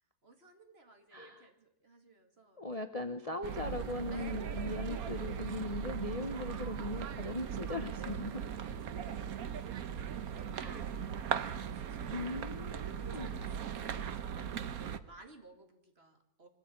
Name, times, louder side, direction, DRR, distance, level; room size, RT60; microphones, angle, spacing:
voice 1, 0.2-3.0 4.1-4.5 7.9-16.5, right 3 dB, 40° right, 4 dB, 2.7 m, -58 dB
voice 2, 1.1-1.4 2.6-8.4 10.6-10.9 12.1-13.3, left 2 dB, 25° left, 7 dB, 1.0 m, -39 dB
sound 1, 3.4-15.0, right 8 dB, 70° right, 1.4 m, -39 dB
23.0 x 14.5 x 8.8 m, 0.84 s
omnidirectional pair, 1.7 m